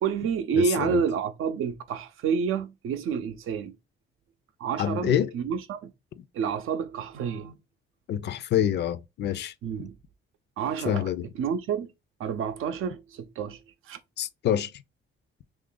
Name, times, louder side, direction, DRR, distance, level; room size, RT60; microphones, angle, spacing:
voice 1, 0.0-3.8 4.6-5.9 6.3-7.6 9.6-9.9 10.6-11.1 11.4-11.9 12.2-13.6 13.9-14.0, right 6 dB, 85° right, 0.5 m, -29 dB
voice 2, 0.5-1.0 4.8-5.3 8.1-9.5 10.9-11.3 14.2-14.7, left 10 dB, 55° left, 0.4 m, -26 dB
3.0 x 2.5 x 3.7 m
cardioid pair, 120°, 21 cm